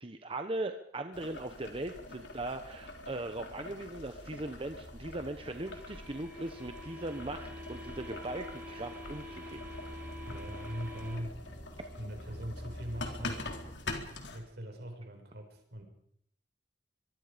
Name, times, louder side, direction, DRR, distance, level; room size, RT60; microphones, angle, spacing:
voice 1, 0.0-9.6, right 2 dB, 30° right, 7 dB, 1.1 m, -39 dB
Boiling, 1.1-14.4, left 2 dB, 80° left, 3.8 m, -45 dB
sound 1, 2.7-13.8, equal, 5° left, 5.2 m, -50 dB
sound 2, 5.2-11.2, left 1 dB, 10° right, 5.2 m, -48 dB
voice 2, 10.3-11.4 12.0-13.5 14.3-15.8, equal, 65° right, 4 dB, 6.5 m, -41 dB
24.5 x 23.0 x 5.2 m, 0.67 s
head